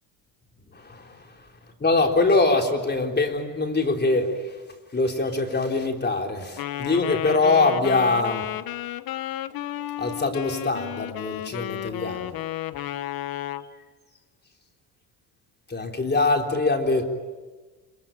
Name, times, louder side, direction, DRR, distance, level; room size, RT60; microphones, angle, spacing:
voice 1, 0.7-1.2 1.8-4.3 4.9-8.5 10.0-12.4 15.7-17.1, left 3 dB, 25° left, 4 dB, 3.7 m, -23 dB
Wind instrument woodwind instrument, 6.6-13.7, left 12 dB, 55° left, 1.1 m, -32 dB
26.5 x 24.0 x 9.0 m, 1.3 s
supercardioid pair, 90°, 44 cm